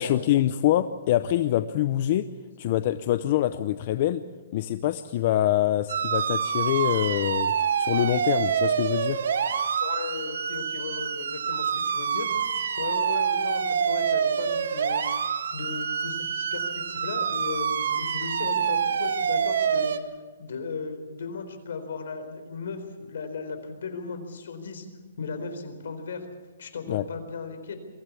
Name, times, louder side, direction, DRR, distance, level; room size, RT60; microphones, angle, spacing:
voice 1, 0.0-2.2 2.6-4.2 4.5-9.2 26.9-27.1, left 12 dB, 35° left, 12 dB, 0.6 m, -25 dB
sound 1, 5.9-20.0, right 7 dB, 65° right, 1.5 m, -26 dB
voice 2, 9.8-12.3 12.8-19.9 20.4-24.9 25.2-26.3 26.6-27.7, left 4 dB, 65° left, 8 dB, 4.1 m, -36 dB
23.0 x 15.5 x 8.4 m, 1.4 s
hypercardioid pair, 170°, 0 cm